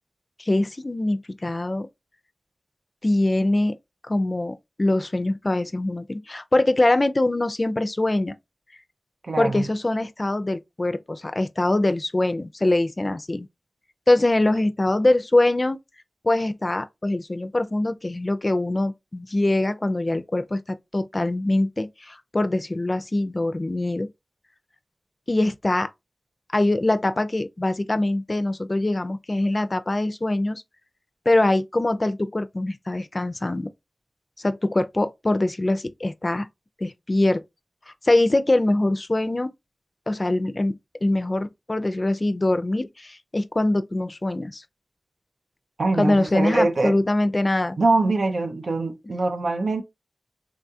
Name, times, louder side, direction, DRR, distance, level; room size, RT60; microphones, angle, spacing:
voice 1, 0.4-1.9 3.0-3.8 4.1-8.3 9.4-13.5 14.1-15.8 16.2-24.1 25.3-25.9 26.5-30.6 31.3-33.7 34.4-36.5 36.8-37.4 38.0-39.5 40.1-44.6 46.0-47.8, left 2 dB, 35° left, 0.4 m, -23 dB
voice 2, 9.2-9.7 45.8-47.0 47.8-49.8, right 3 dB, 85° right, 0.4 m, -23 dB
3.6 x 2.3 x 2.6 m
wide cardioid pair, 80°, 0 cm